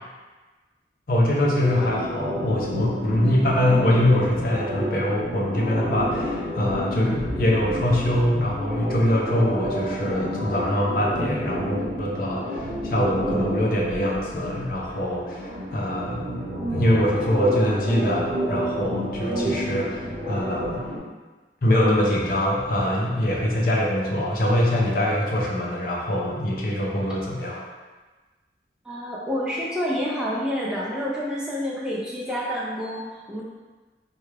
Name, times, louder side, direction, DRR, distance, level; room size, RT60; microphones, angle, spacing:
voice 1, 1.1-16.4 16.7-20.9 21.6-27.6, left 1 dB, 55° left, -3 dB, 0.6 m, -23 dB
sound 1, 1.5-21.0, equal, 45° right, 1.0 m, -30 dB
voice 2, 28.8-33.4, equal, 5° right, -6 dB, 0.4 m, -28 dB
3.3 x 2.3 x 3.2 m, 1.3 s
head